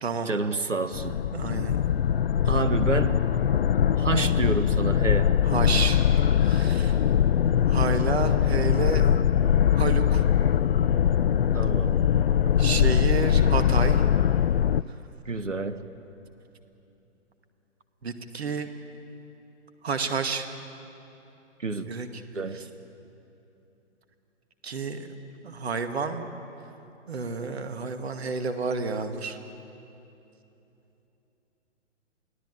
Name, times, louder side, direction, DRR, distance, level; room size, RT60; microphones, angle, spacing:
voice 1, 0.2-1.2 2.5-3.2 4.0-5.3 11.5-12.0 15.2-15.8 21.6-21.9 22.3-22.6, right 3 dB, 80° right, 11 dB, 1.5 m, -28 dB
sound 1, 0.9-14.8, left 9 dB, 55° left, 0.5 m, -22 dB
voice 2, 1.3-1.8 2.4-2.6 5.5-6.0 6.4-7.0 7.7-9.1 9.7-10.3 12.6-14.0 18.0-18.7 19.8-20.5 21.9-22.1 24.6-25.1 25.4-26.2 27.1-29.4, right 5 dB, 60° right, 8 dB, 2.2 m, -30 dB
28.5 x 18.5 x 8.6 m, 3.0 s
figure-of-eight pair, 125°, 37 cm